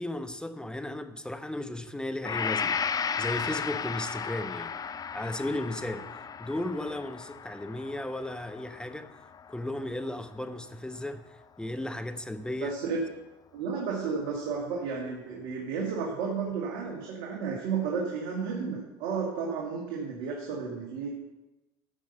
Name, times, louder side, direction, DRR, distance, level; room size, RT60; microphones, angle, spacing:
voice 1, 0.0-4.8 5.1-6.1 6.4-9.2 9.5-12.8, left 1 dB, 5° left, 1.0 m, -35 dB
Gong, 2.2-10.3, left 6 dB, 25° left, 0.5 m, -35 dB
voice 2, 12.6-13.0 13.5-21.1, right 5 dB, 75° right, 2.2 m, -32 dB
13.5 x 5.5 x 6.8 m
supercardioid pair, 85°, 14 cm